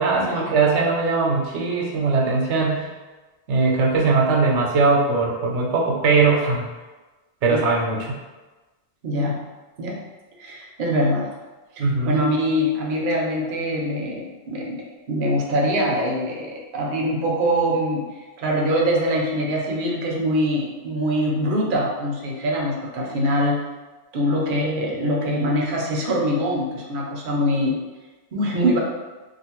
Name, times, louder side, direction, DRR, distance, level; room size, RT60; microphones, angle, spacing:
voice 1, 0.0-2.9 3.5-6.6 7.4-8.1 11.8-12.2, right 4 dB, 90° right, -1 dB, 0.9 m, -20 dB
voice 2, 9.0-9.4 9.8-10.0 10.4-11.3 11.8-14.8 15.1-18.0 18.4-23.6 24.1-27.8 28.3-28.8, equal, 60° right, -1 dB, 0.6 m, -23 dB
2.5 x 2.4 x 2.9 m, 1.2 s
omnidirectional pair, 1.2 m